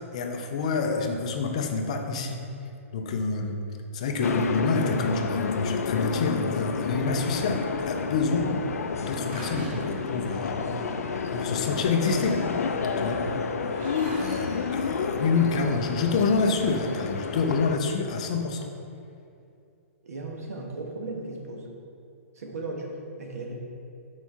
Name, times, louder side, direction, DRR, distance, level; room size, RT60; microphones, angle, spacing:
voice 1, 0.1-2.4 2.9-3.6 3.9-8.5 8.9-10.6 11.3-12.4 13.0-13.3 14.1-18.7, left 4 dB, 25° left, 4 dB, 0.4 m, -27 dB
sound 1, 4.2-17.8, left 5 dB, 85° left, 0.4 m, -30 dB
sound 2, 7.6-15.4, equal, 35° right, 1.3 m, -42 dB
Keyboard (musical), 12.0-17.2, equal, 55° right, 1.4 m, -42 dB
voice 2, 20.0-21.7 22.3-23.5, right 2 dB, 80° right, 1 dB, 1.1 m, -36 dB
4.6 x 4.5 x 5.6 m, 2.5 s
hypercardioid pair, 180°, 8 cm